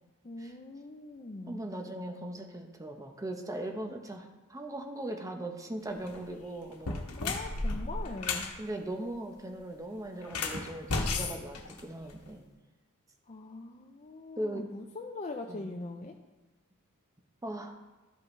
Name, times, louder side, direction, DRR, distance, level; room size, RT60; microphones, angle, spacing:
voice 1, 0.2-1.6 7.2-8.5 13.3-16.1, left 2 dB, 30° left, 3 dB, 0.5 m, -41 dB
voice 2, 1.5-7.0 8.6-12.4 14.4-14.7 15.5-15.7 17.4-17.8, right 1 dB, 15° right, 4 dB, 0.8 m, -39 dB
sound 1, 5.9-6.2 6.7-8.5 10.2-12.3, left 3 dB, 85° left, 1.1 m, -34 dB
13.0 x 5.5 x 3.2 m, 1.1 s
head